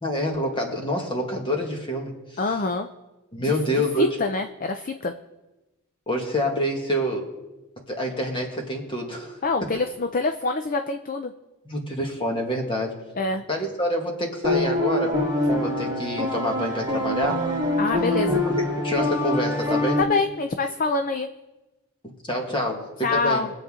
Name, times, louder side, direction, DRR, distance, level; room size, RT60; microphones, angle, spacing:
voice 1, 0.0-2.1 3.3-4.2 6.1-7.3 7.9-9.7 11.7-13.0 13.5-15.2 15.5-17.5 18.5-18.6 18.8-20.0 22.3-23.5, equal, 25° left, 1 dB, 1.9 m, -27 dB
voice 2, 2.4-2.9 3.4-3.6 4.0-5.1 9.4-11.3 13.2-13.4 17.8-18.4 20.0-21.3 23.0-23.5, left 3 dB, 40° left, 6 dB, 0.6 m, -25 dB
sound 1, 14.4-20.0, left 1 dB, 20° right, 2.3 m, -24 dB
23.0 x 8.0 x 3.7 m, 1.1 s
head